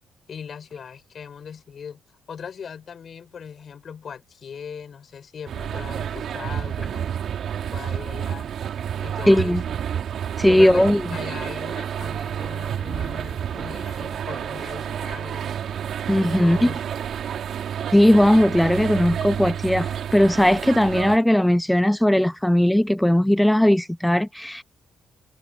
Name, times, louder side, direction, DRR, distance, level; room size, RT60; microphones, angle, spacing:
voice 1, 0.3-2.0 2.3-7.1 7.7-8.5 9.0-9.8 10.5-15.6 16.2-16.8, left 7 dB, 50° left, 5.8 m, -39 dB
sound 1, 5.5-21.2, right 9 dB, 65° right, 3.1 m, -30 dB
voice 2, 9.3-9.6 10.4-11.0 16.1-16.7 17.9-24.6, left 1 dB, 5° left, 0.4 m, -18 dB
cardioid pair, 90°, 0 cm